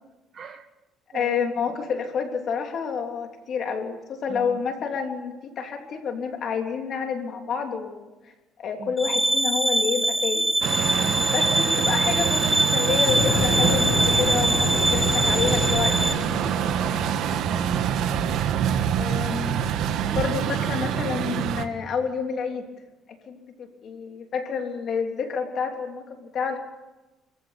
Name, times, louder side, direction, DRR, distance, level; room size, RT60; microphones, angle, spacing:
voice 1, 0.3-0.7 1.1-1.4 4.3-4.6 8.8-8.9 10.9-11.2 16.5-17.8, right 7 dB, 45° right, 9 dB, 1.6 m, -39 dB
voice 2, 1.1-8.1 8.6-10.5 11.3-16.1 19.0-19.6 20.2-22.7 23.3-26.6, left 6 dB, 50° left, 3 dB, 3.5 m, -29 dB
sound 1, 9.0-16.1, right 1 dB, 5° right, 1.3 m, -23 dB
Truck, 10.6-21.6, right 9 dB, 70° right, 1.5 m, -26 dB
sound 2, 13.1-18.9, left 4 dB, 80° left, 5.2 m, -30 dB
24.5 x 15.5 x 8.4 m, 1.1 s
cardioid pair, 125°, 0 cm